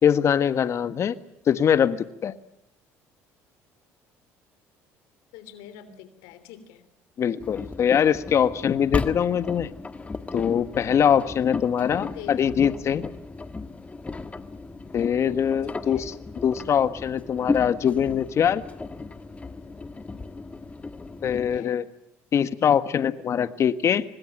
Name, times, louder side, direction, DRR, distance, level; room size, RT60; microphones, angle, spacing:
voice 1, 0.0-1.2 1.5-2.3 7.2-9.7 10.3-13.1 14.9-16.1 16.4-18.6 21.2-21.8 22.3-24.0, left 8 dB, 45° left, 13 dB, 1.4 m, -22 dB
voice 2, 5.3-6.8 12.0-12.6 15.7-16.1 21.3-21.8, left 9 dB, 80° left, 12 dB, 3.2 m, -45 dB
Engine, 7.4-21.6, left 3 dB, 20° left, 1.6 m, -35 dB
25.5 x 20.0 x 8.9 m, 0.78 s
supercardioid pair, 80°, 6 cm